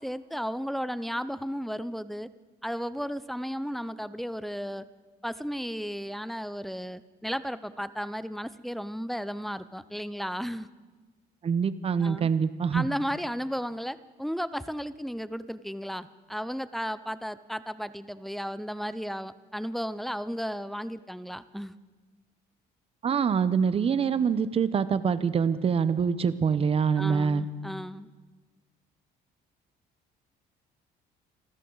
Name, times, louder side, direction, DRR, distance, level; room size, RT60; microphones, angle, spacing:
voice 1, 0.0-2.3 2.6-4.9 5.2-10.7 12.0-12.3 12.7-21.8 27.0-28.1, equal, ahead, 14 dB, 0.5 m, -34 dB
voice 2, 11.4-12.9 23.0-27.4, right 6 dB, 35° right, 14 dB, 0.8 m, -25 dB
27.5 x 13.0 x 3.9 m, 1.3 s
cardioid pair, 110°, 17 cm